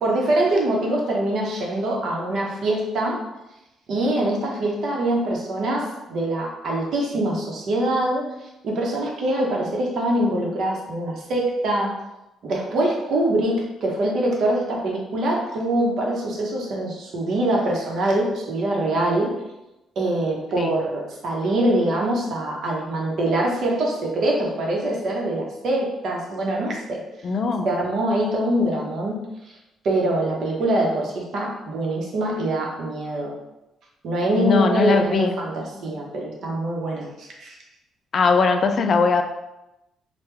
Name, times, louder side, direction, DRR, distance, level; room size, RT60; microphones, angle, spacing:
voice 1, 0.0-3.2 3.9-8.3 8.6-12.0 12.4-19.3 20.0-27.0 27.6-29.2 29.5-29.6 29.8-33.4 34.0-37.6, right 1 dB, 65° right, -1 dB, 0.8 m, -24 dB
voice 2, 27.2-27.7 34.3-35.4 38.1-39.2, left 4 dB, 50° left, 6 dB, 0.3 m, -20 dB
3.3 x 2.2 x 3.3 m, 0.94 s
cardioid pair, 90°, 0 cm